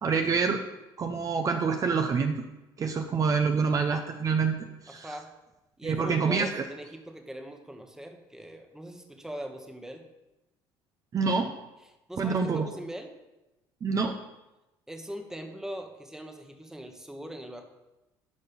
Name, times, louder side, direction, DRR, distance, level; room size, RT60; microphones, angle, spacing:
voice 1, 0.0-0.6 1.0-2.4 2.8-4.5 4.8-5.1 5.8-6.6 11.1-11.5 12.2-12.7 13.8-14.2, right 5 dB, 40° right, 5 dB, 0.8 m, -26 dB
voice 2, 4.9-5.3 5.8-10.1 11.8-13.2 14.9-17.7, right 1 dB, 5° right, 5 dB, 1.3 m, -41 dB
10.5 x 5.4 x 5.4 m, 0.99 s
cardioid pair, 95°, 9 cm